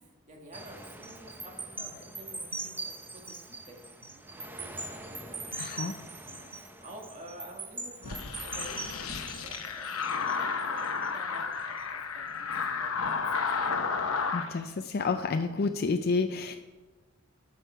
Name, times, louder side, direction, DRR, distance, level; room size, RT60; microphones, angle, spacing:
voice 1, 0.0-5.6 6.2-13.7, right 1 dB, 35° right, 1 dB, 1.8 m, -50 dB
sound 1, 0.5-11.1 11.5-11.8, right 3 dB, 10° right, 0.7 m, -42 dB
voice 2, 5.5-6.0 14.3-16.5, left 4 dB, 50° left, 6 dB, 0.5 m, -30 dB
sound 2, 8.0-14.5, left 5 dB, 80° left, 0.9 m, -32 dB
12.5 x 6.4 x 4.5 m, 1.3 s
head